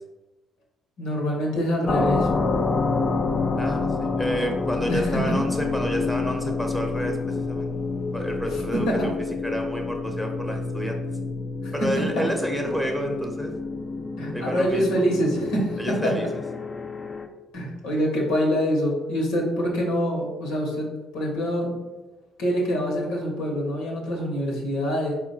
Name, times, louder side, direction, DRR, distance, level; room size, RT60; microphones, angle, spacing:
voice 1, 1.0-2.3 4.9-5.2 8.9-9.0 11.6-11.7 14.2-16.1 17.5-21.8 22.4-25.1, equal, 75° left, -1 dB, 0.9 m, -25 dB
sound 1, 1.9-17.3, left 3 dB, 35° left, 0.4 m, -28 dB
voice 2, 3.6-7.7 8.1-9.1 9.4-11.0 11.7-13.5 14.3-15.1 15.8-16.3, equal, ahead, 3 dB, 0.9 m, -29 dB
4.4 x 2.2 x 4.0 m, 1.2 s
hypercardioid pair, 50°, 0 cm